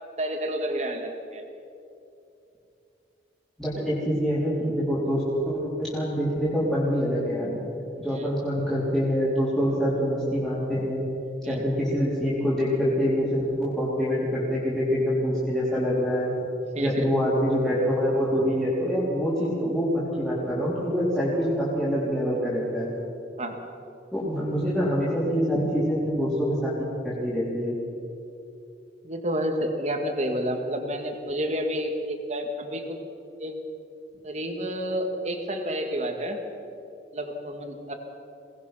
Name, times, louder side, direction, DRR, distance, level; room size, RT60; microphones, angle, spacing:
voice 1, 0.2-1.4 8.1-8.3 11.4-11.6 16.7-17.1 23.4-23.6 29.0-33.0 33.4-33.6 34.2-36.4 37.1-37.9, equal, 40° right, 4 dB, 2.2 m, -30 dB
voice 2, 3.6-7.6 8.0-11.1 11.5-16.3 16.8-22.9 24.1-27.8, equal, 5° left, -9 dB, 3.9 m, -25 dB
23.0 x 19.0 x 5.9 m, 2.7 s
head